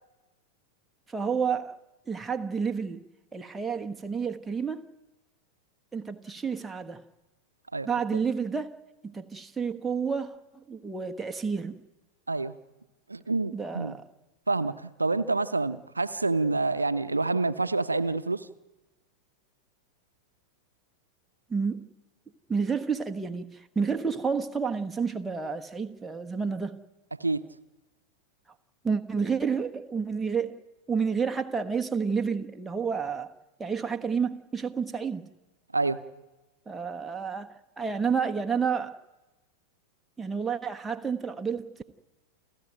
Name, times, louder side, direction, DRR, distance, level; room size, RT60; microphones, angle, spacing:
voice 1, 1.1-1.8 2.1-3.0 3.3-4.9 5.9-7.0 7.8-11.8 13.5-14.0 21.5-21.9 22.5-26.8 28.8-33.3 33.6-35.2 36.7-39.0 40.2-41.8, right 5 dB, 10° right, 1.3 m, -30 dB
voice 2, 13.1-13.9 14.5-18.5 27.2-27.4 35.7-36.0, right 3 dB, 80° right, 0.7 m, -27 dB
29.5 x 13.0 x 9.1 m
figure-of-eight pair, 90°, 0 cm